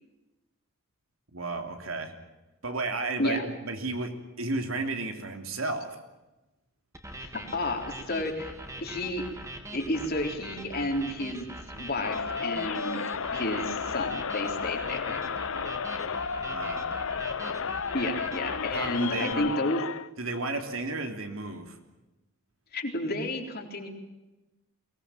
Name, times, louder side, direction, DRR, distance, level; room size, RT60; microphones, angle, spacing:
voice 1, 1.3-2.1 2.6-4.1 4.4-6.0 16.4-16.9 18.7-19.5 20.2-21.8, right 3 dB, 75° right, 5 dB, 3.2 m, -33 dB
sound 1, 6.9-19.3, right 1 dB, 15° right, 2.7 m, -42 dB
voice 2, 7.2-8.5 8.8-9.3 9.7-11.5 11.8-13.0 13.3-15.2 17.9-19.8 22.7-23.9, left 1 dB, 50° left, 3 dB, 3.8 m, -31 dB
Crowd, 12.0-20.1, left 6 dB, 70° left, 0.7 m, -33 dB
23.0 x 19.0 x 9.0 m, 1.0 s
head